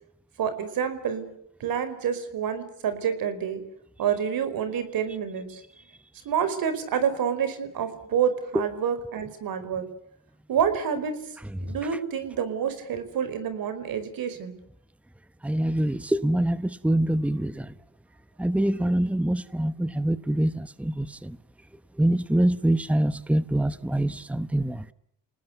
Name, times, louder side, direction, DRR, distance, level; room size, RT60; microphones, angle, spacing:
voice 1, 0.4-1.3 1.6-3.6 4.0-5.6 6.2-9.9 10.5-11.2 11.6-14.5, right 7 dB, 70° right, 4.9 m, -28 dB
voice 2, 15.4-17.7 18.4-21.4 22.0-24.8, right 1 dB, 5° right, 1.0 m, -25 dB
29.5 x 19.0 x 8.2 m
cardioid pair, 95°, 35 cm